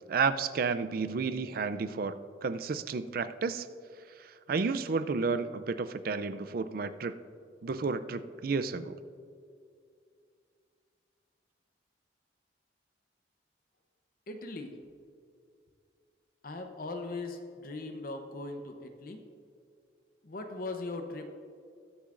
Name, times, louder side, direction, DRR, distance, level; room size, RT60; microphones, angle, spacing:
voice 1, 0.1-3.7 4.5-7.1 7.6-9.0, right 4 dB, 55° right, 12 dB, 0.4 m, -31 dB
voice 2, 14.3-14.8 16.4-19.2 20.2-21.3, left 2 dB, 50° left, 5 dB, 0.7 m, -39 dB
20.5 x 6.9 x 2.5 m, 2.3 s
head